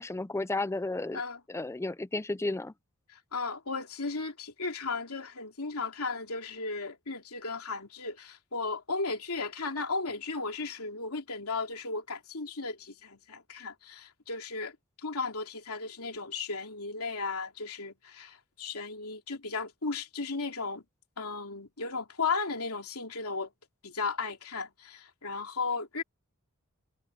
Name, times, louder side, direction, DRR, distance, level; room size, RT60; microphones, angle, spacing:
voice 1, 0.0-1.2 1.5-2.7, left 2 dB, 10° left, 0.4 m, -33 dB
voice 2, 3.1-20.8 21.2-23.5 23.8-26.0, left 4 dB, 75° left, 3.1 m, -35 dB
head